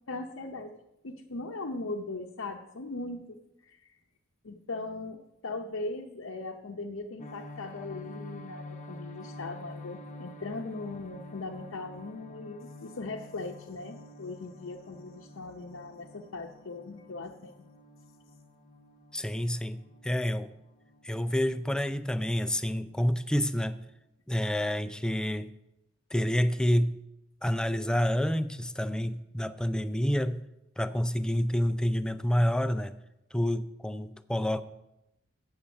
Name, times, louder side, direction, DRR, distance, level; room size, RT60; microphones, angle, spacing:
voice 1, 0.1-0.8 1.0-4.0 4.4-17.7, left 3 dB, 80° left, 0.7 m, -39 dB
sound 1, 7.2-24.1, left 2 dB, 40° left, 0.9 m, -49 dB
voice 2, 19.1-20.5 21.0-23.9 24.3-25.5 26.1-27.0 27.4-30.4 30.8-33.0 33.3-34.6, equal, 5° left, 0.4 m, -28 dB
8.5 x 6.5 x 7.0 m
head